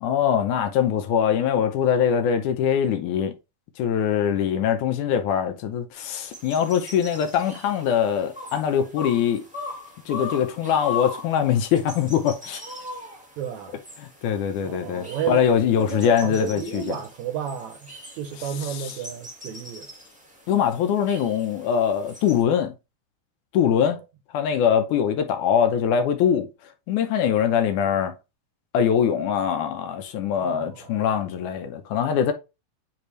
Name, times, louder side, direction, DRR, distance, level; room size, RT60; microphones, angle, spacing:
voice 1, 0.0-3.3 3.8-9.4 10.1-12.6 14.0-17.0 18.4-19.0 20.5-22.7 23.5-24.0 24.3-26.5 26.9-28.1 28.7-32.3, left 8 dB, 75° left, 2.1 m, -23 dB
sound 1, 5.9-22.4, left 4 dB, 5° right, 0.6 m, -40 dB
voice 2, 13.4-13.8 14.6-15.4 15.8-19.9 23.7-23.9 30.4-30.7, right 8 dB, 75° right, 1.8 m, -32 dB
8.4 x 3.5 x 3.2 m
omnidirectional pair, 3.9 m